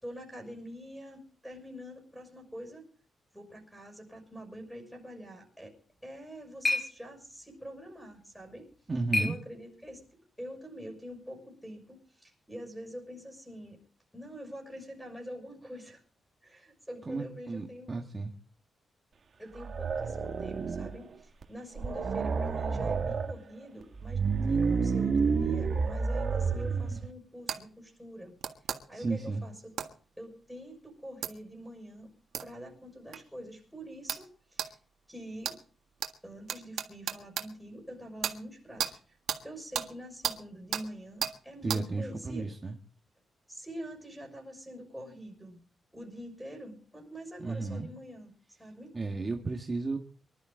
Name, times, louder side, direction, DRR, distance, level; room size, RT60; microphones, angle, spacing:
voice 1, 0.0-2.9 3.3-5.8 6.0-8.7 9.2-13.8 14.1-16.0 16.4-18.1 19.4-28.3 28.9-29.7 30.2-32.1 32.4-34.8 35.1-35.5 36.2-39.2 39.4-42.5 43.5-45.6 45.9-48.3 48.6-48.9, equal, ahead, 1 dB, 6.2 m, -45 dB
sound 1, 5.9-10.1, left 2 dB, 25° left, 7.0 m, -36 dB
voice 2, 8.9-9.4 17.1-18.3 28.9-29.4 41.6-42.8 47.4-47.9 48.9-50.0, right 3 dB, 25° right, 2 dB, 1.6 m, -33 dB
sound 2, 19.6-21.1 21.4-21.5 21.8-23.3 23.9-27.1, right 5 dB, 45° right, 1.7 m, -29 dB
sound 3, 27.5-27.6 28.4-28.8 29.8-29.9 31.2-31.3 32.3-32.5 33.1-33.2 34.1-34.2 34.6-34.7 35.4-35.6 36.0-36.1 36.5-37.5 38.2-38.4 38.8-38.9 39.3-39.4 39.7-39.9 40.2-40.4 40.7-40.8 41.2-41.3 41.7-41.8, right 9 dB, 85° right, 1.7 m, -33 dB
24.5 x 12.0 x 3.8 m, 0.43 s
cardioid pair, 115°, 0 cm